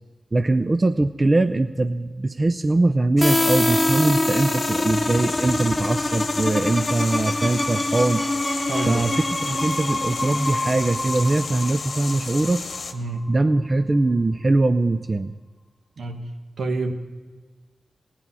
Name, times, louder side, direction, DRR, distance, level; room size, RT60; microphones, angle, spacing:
voice 1, 0.3-8.3 8.9-12.6 13.3-15.3, right 2 dB, 40° right, 10 dB, 0.5 m, -22 dB
sound 1, 3.2-12.9, left 4 dB, 70° left, 1.0 m, -33 dB
sound 2, 3.2-12.8, left 1 dB, 15° left, 1.3 m, -25 dB
voice 2, 8.7-9.1 12.9-13.2 16.0-16.3 16.6-16.9, right 3 dB, 75° right, 5 dB, 1.3 m, -28 dB
16.5 x 9.7 x 5.5 m, 1.4 s
cardioid pair, 40°, 0 cm